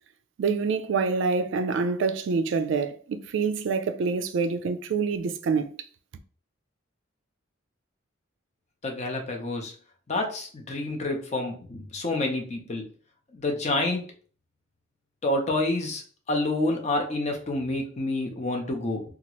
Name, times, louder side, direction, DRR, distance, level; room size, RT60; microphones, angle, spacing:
voice 1, 0.4-5.8, right 5 dB, 60° right, 0.3 m, -26 dB
voice 2, 8.8-9.7 10.1-12.9 13.3-14.1 15.2-16.0 16.3-19.0, left 2 dB, 35° left, 0.6 m, -28 dB
2.8 x 2.4 x 2.9 m
head